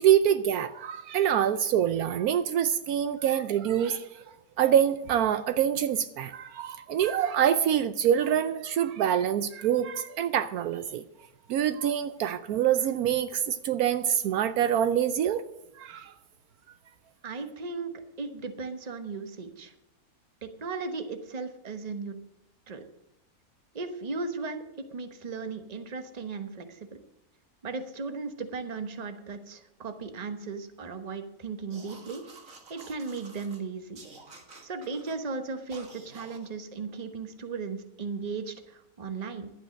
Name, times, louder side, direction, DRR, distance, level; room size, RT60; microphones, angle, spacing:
voice 1, 0.0-4.2 4.6-11.0 11.5-15.4 15.8-16.1, right 9 dB, 75° right, 12 dB, 1.1 m, -25 dB
voice 2, 17.2-19.7 20.4-22.2 22.7-22.8 23.7-24.6 24.9-26.9 27.6-32.2 32.7-34.0 34.6-39.5, right 4 dB, 30° right, 8 dB, 1.0 m, -36 dB
sound 1, 31.7-33.6 34.0-35.2 35.7-36.5, right 3 dB, 60° right, 2.1 m, -50 dB
11.5 x 8.9 x 6.3 m, 0.86 s
omnidirectional pair, 1.6 m